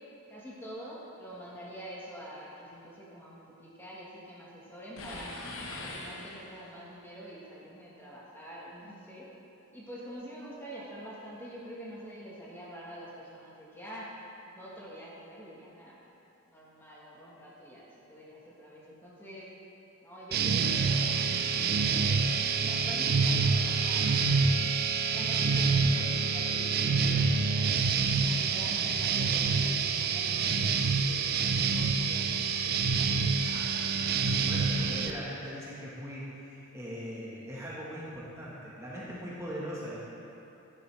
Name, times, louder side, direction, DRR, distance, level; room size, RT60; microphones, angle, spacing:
voice 1, 0.3-5.3 5.7-9.3 9.7-14.1 14.5-16.1 16.5-19.5 20.0-24.1 25.1-31.2 31.6-33.4, equal, 10° left, -6 dB, 1.3 m, -46 dB
sound 1, 5.0-6.8, left 2 dB, 70° left, 1.1 m, -41 dB
sound 2, 20.3-35.1, right 5 dB, 45° right, 0.4 m, -27 dB
voice 2, 33.4-40.0, equal, 15° right, -7 dB, 1.3 m, -41 dB
9.9 x 9.7 x 3.3 m, 3.0 s
head